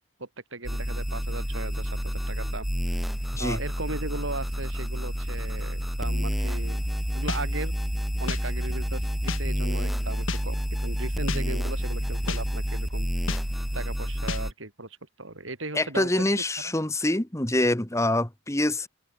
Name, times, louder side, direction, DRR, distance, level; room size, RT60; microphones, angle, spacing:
voice 1, 0.2-3.0 3.4-6.8 7.1-7.7 8.2-13.1 13.7-16.3 16.6-16.7, right 2 dB, 80° right, 5.0 m, -37 dB
sound 1, 0.6-14.5, equal, ahead, 0.8 m, -29 dB
sound 2, 7.3-7.4 8.3-8.4 9.3-9.4 10.3-10.4 11.3-11.4 12.3-12.4 13.3-13.4 14.3-14.4, left 5 dB, 85° left, 1.0 m, -31 dB
voice 2, 15.7-18.9, left 1 dB, 15° left, 1.5 m, -25 dB
head